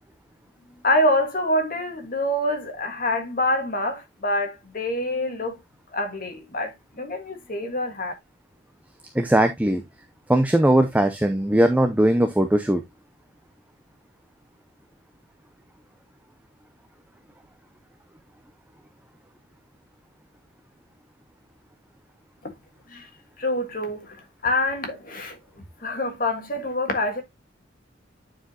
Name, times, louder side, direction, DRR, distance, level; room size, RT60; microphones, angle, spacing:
voice 1, 0.8-5.6 5.9-8.1 22.9-23.0 23.4-24.2 24.4-25.4 25.8-27.2, left 1 dB, 45° left, 1.5 m, -26 dB
voice 2, 9.1-9.8 10.3-12.8, right 1 dB, 10° right, 0.5 m, -19 dB
9.2 x 4.9 x 2.8 m
head